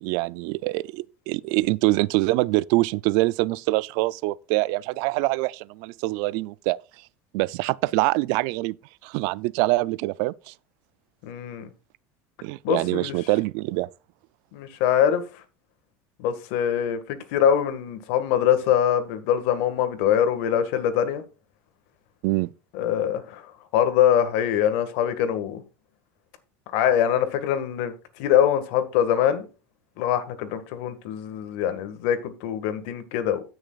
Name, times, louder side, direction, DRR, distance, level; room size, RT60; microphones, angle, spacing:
voice 1, 0.0-6.8 7.3-8.8 9.0-10.5 12.4-13.9 22.2-22.5, right 20 dB, 70° right, 0.4 m, -24 dB
voice 2, 11.2-11.7 12.6-13.2 14.5-15.2 16.2-21.2 22.7-23.4 23.7-25.6 26.7-29.4 30.0-33.4, left 9 dB, 75° left, 1.7 m, -23 dB
16.5 x 6.4 x 2.4 m
supercardioid pair, 120°, 7 cm